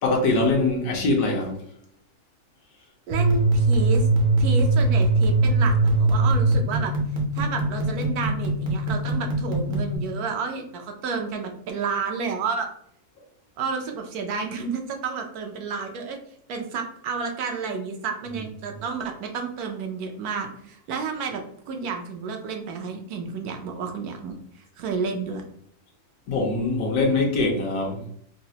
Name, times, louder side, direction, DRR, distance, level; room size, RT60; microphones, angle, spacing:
voice 1, 0.0-1.6 26.3-28.1, left 3 dB, 75° left, 1.2 m, -23 dB
sound 1, 3.1-10.0, right 2 dB, 50° right, 0.6 m, -21 dB
voice 2, 3.1-4.1 4.4-6.9 7.3-12.7 13.6-16.2 16.5-24.4 24.8-25.4, right 5 dB, 75° right, 1.1 m, -31 dB
3.9 x 2.0 x 2.7 m
omnidirectional pair, 1.7 m